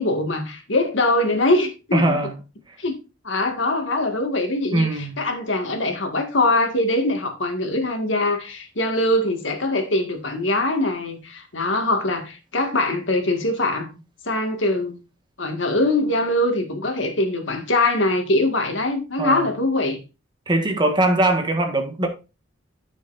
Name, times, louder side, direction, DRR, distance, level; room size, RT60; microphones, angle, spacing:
voice 1, 0.0-2.2 2.8-3.0 3.2-14.0 14.2-15.0 15.4-20.0, left 2 dB, 70° left, 2.0 m, -22 dB
voice 2, 1.9-2.3 4.7-5.2 19.2-19.5 20.5-22.1, right 2 dB, 25° right, 1.6 m, -21 dB
14.5 x 5.7 x 2.6 m
head